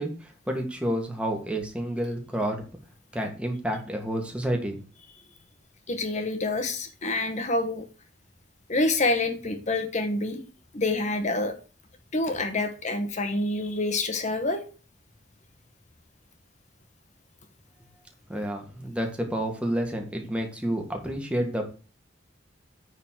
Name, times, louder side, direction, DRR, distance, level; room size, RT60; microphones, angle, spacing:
voice 1, 0.0-2.6 3.1-4.8 18.3-21.6, right 1 dB, 5° right, 2 dB, 1.8 m, -29 dB
voice 2, 5.9-7.9 8.7-10.4 10.7-11.6 12.1-14.6, left 2 dB, 40° left, 8 dB, 1.3 m, -27 dB
9.7 x 4.1 x 6.4 m, 0.35 s
head